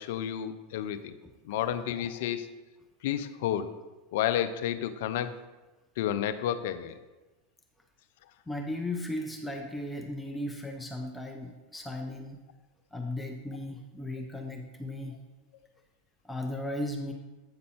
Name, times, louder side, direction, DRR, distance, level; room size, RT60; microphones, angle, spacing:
voice 1, 0.0-1.1 1.4-2.5 3.0-3.7 4.1-5.3 6.0-7.0, left 10 dB, 70° left, 11 dB, 0.5 m, -31 dB
voice 2, 1.2-1.6 8.5-12.4 12.9-15.2 16.2-17.1, left 1 dB, 5° left, 2 dB, 0.7 m, -36 dB
8.7 x 5.3 x 4.3 m, 1.2 s
hypercardioid pair, 100°, 0 cm